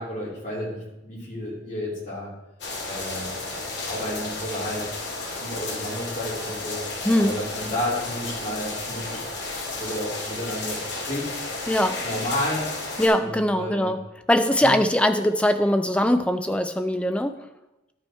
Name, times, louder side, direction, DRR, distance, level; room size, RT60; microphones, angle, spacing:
voice 1, 0.0-2.3 2.8-3.5 3.8-5.0 5.3-6.8 7.2-9.2 9.8-11.3 12.0-12.7 13.2-13.9 14.6-14.7, left 1 dB, 40° left, -5 dB, 2.8 m, -31 dB
sound 1, 2.6-13.1, left 2 dB, 60° left, 2.1 m, -33 dB
voice 2, 7.0-7.3 11.7-12.0 13.0-17.4, left 1 dB, 5° left, 8 dB, 0.3 m, -22 dB
11.5 x 5.4 x 4.5 m, 0.98 s
head